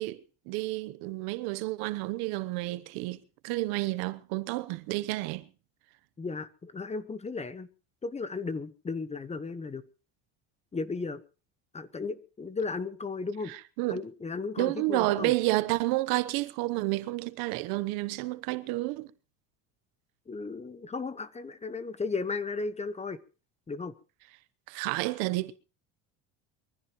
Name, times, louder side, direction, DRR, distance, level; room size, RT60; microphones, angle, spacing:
voice 1, 0.0-5.5 13.5-14.0 14.6-19.1 24.7-25.5, right 19 dB, 80° right, 1.1 m, -30 dB
voice 2, 6.2-7.7 8.0-9.8 10.7-11.2 11.7-13.5 13.9-15.3 20.3-23.2 23.7-23.9, left 4 dB, 20° left, 1.0 m, -35 dB
23.0 x 15.0 x 3.0 m
cardioid pair, 120°, 36 cm